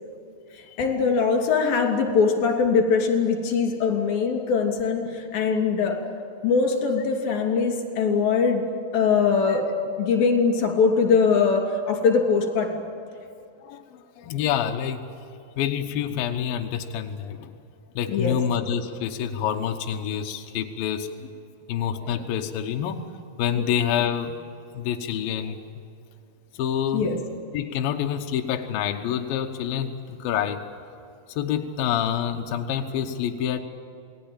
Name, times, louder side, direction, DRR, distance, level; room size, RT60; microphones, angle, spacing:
voice 1, 0.8-6.0 6.4-8.6 8.9-9.6 10.0-12.8 18.1-18.4 26.9-27.2, left 5 dB, 50° left, 2 dB, 4.4 m, -22 dB
voice 2, 13.6-15.0 15.6-17.6 17.9-21.3 21.7-23.1 23.4-24.4 24.7-25.6 26.5-30.6 31.4-33.6, left 9 dB, 80° left, 4 dB, 2.0 m, -27 dB
28.0 x 19.5 x 8.9 m, 2.5 s
omnidirectional pair, 5.8 m